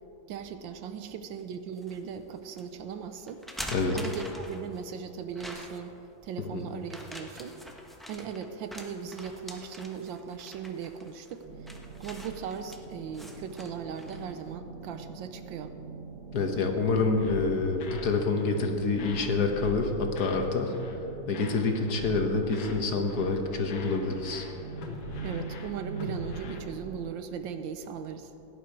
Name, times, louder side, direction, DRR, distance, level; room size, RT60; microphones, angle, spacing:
voice 1, 0.3-3.4 3.9-5.9 6.2-7.6 8.1-11.7 12.0-15.7 25.2-28.3, right 7 dB, 75° right, 9 dB, 1.4 m, -38 dB
sound 1, 1.4-2.0 2.6-2.7 3.3-4.8 5.4-6.0 6.8-14.3, equal, ahead, 0.5 m, -44 dB
sound 2, 11.4-27.1, right 4 dB, 50° right, 1.2 m, -43 dB
voice 2, 16.3-20.7 21.3-24.4, left 3 dB, 55° left, 4 dB, 1.4 m, -27 dB
sound 3, 17.2-18.1 18.4-18.7 18.9-20.5 20.7-21.0 21.3-22.8 23.1-23.4 23.7-26.6, left 6 dB, 80° left, 1.9 m, -43 dB
17.0 x 10.5 x 4.7 m, 3.0 s
omnidirectional pair, 2.2 m